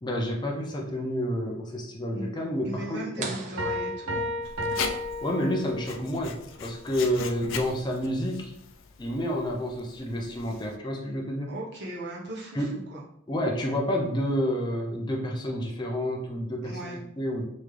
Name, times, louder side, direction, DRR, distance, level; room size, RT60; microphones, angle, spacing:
voice 1, 0.0-3.3 5.2-8.5 9.0-11.5 12.5-12.8 13.3-17.4, equal, 20° left, -1 dB, 0.6 m, -29 dB
voice 2, 2.6-4.3 11.4-13.0 16.6-17.0, right 1 dB, 55° right, -4 dB, 1.1 m, -37 dB
sound 1, 3.2-4.9, right 4 dB, 35° right, 0.4 m, -40 dB
Piano, 3.6-6.1, left 1 dB, 75° right, 0.6 m, -32 dB
Writing, 4.4-10.8, left 5 dB, 75° left, 0.4 m, -39 dB
3.7 x 3.1 x 3.3 m, 0.73 s
head